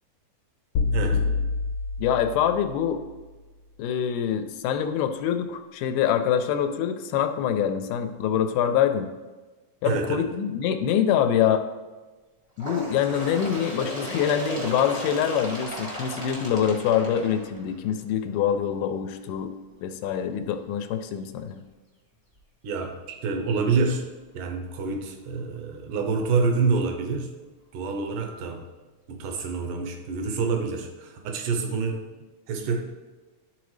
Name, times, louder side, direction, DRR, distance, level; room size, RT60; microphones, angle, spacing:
sound 1, 0.8-3.0, left 4 dB, 70° left, 2.0 m, -27 dB
voice 1, 0.9-1.2 9.8-10.2 22.6-24.0 24.3-27.3 27.7-28.6 29.1-32.0 32.5-32.8, right 4 dB, 85° right, 3 dB, 2.4 m, -27 dB
voice 2, 2.0-3.0 3.8-9.1 9.8-11.7 12.6-19.5 19.8-21.6, left 9 dB, 90° left, 7 dB, 2.1 m, -25 dB
Bird, 12.6-18.0 18.9-19.0 19.4-19.5 20.4-20.5 21.4-21.5 22.3-22.4, equal, 40° right, 0.5 m, -35 dB
11.5 x 3.9 x 3.2 m, 1.3 s
omnidirectional pair, 3.7 m